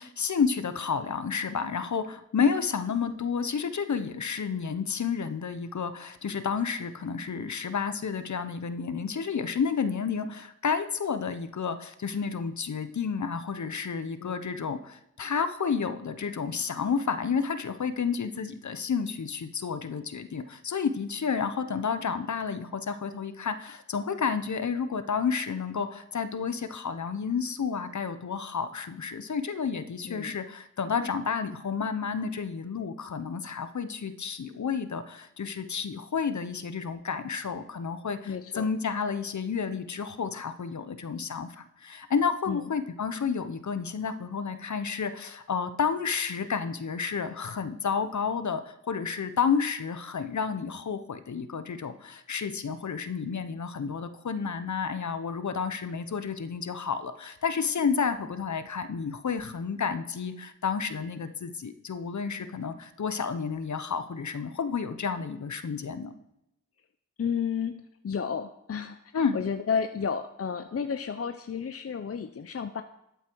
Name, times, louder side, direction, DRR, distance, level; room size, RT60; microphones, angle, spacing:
voice 1, 0.0-66.1 69.1-69.4, left 6 dB, 65° left, 11 dB, 1.0 m, -31 dB
voice 2, 38.3-38.7 42.5-42.7 67.2-72.8, left 6 dB, 45° left, 9 dB, 0.6 m, -32 dB
13.0 x 8.1 x 4.7 m, 0.82 s
cardioid pair, 45°, 32 cm